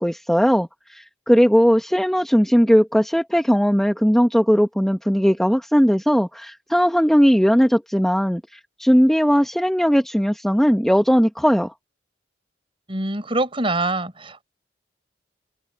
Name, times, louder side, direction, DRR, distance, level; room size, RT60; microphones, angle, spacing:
voice 1, 0.0-8.4 8.8-11.7, equal, ahead, 1.2 m, -18 dB
voice 2, 12.9-14.4, right 2 dB, 30° right, 5.0 m, -24 dB
head